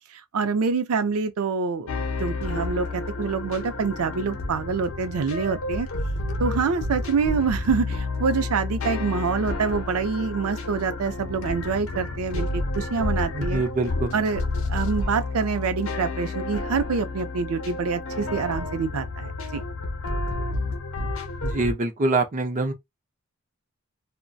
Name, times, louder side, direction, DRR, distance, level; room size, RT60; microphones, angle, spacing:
voice 1, 0.3-1.9 2.2-5.9 6.4-13.6 14.1-14.4 14.7-19.6, right 5 dB, 85° right, 0.4 m, -26 dB
sound 1, 1.9-21.7, left 2 dB, 70° left, 0.7 m, -30 dB
voice 2, 13.3-14.1 21.4-22.7, right 3 dB, 35° right, 0.6 m, -25 dB
2.5 x 2.1 x 2.3 m
head